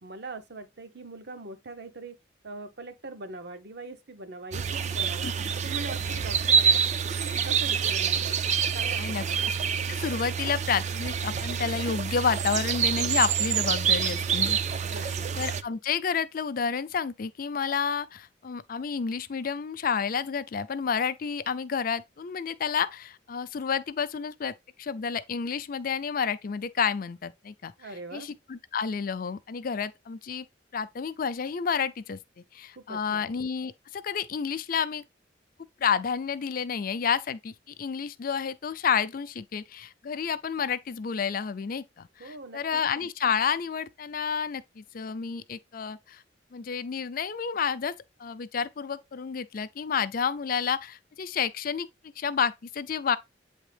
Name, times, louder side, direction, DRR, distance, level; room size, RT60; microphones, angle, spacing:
voice 1, 0.0-2.2 2.4-5.3 5.6-6.8 7.2-8.4 8.7-9.4 14.9-15.3 27.8-28.3 32.8-33.2 42.2-42.8, right 3 dB, 60° right, 0.9 m, -41 dB
sound 1, 4.5-15.6, right 7 dB, 40° right, 0.4 m, -27 dB
voice 2, 9.9-15.0 15.4-27.7 28.1-30.5 30.7-32.2 32.5-35.0 35.8-46.2 46.5-47.9 48.2-51.9 52.2-53.2, left 6 dB, 50° left, 0.4 m, -30 dB
8.3 x 3.6 x 3.3 m
head